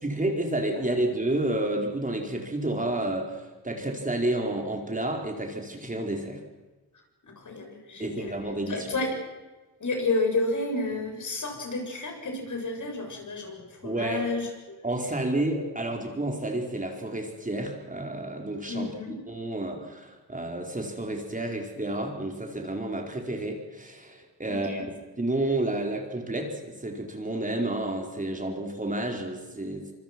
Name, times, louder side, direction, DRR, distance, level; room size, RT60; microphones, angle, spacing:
voice 1, 0.0-6.4 8.0-8.9 13.8-14.2 14.8-18.9 19.3-29.9, right 1 dB, 20° right, 2 dB, 4.6 m, -30 dB
voice 2, 7.4-8.3 8.7-9.2 9.8-14.5 18.7-19.2 24.5-24.8, left 2 dB, 45° left, 3 dB, 7.5 m, -31 dB
26.0 x 24.0 x 6.2 m, 1.2 s
cardioid pair, 85°, 41 cm